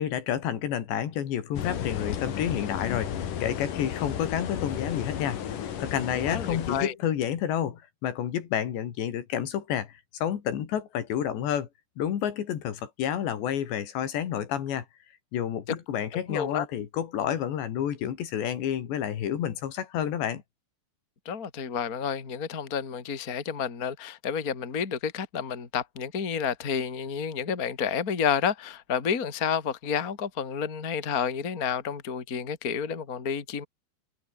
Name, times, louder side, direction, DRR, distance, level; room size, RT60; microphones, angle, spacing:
voice 1, 0.0-5.4 5.8-11.7 12.0-14.9 15.3-20.4, left 9 dB, 70° left, 4.6 m, -30 dB
sound 1, 1.5-6.8, left 9 dB, 55° left, 3.3 m, -33 dB
voice 2, 6.0-6.9 15.7-15.8 16.3-16.7 21.2-33.6, left 7 dB, 25° left, 2.3 m, -30 dB
omnidirectional pair, 5.2 m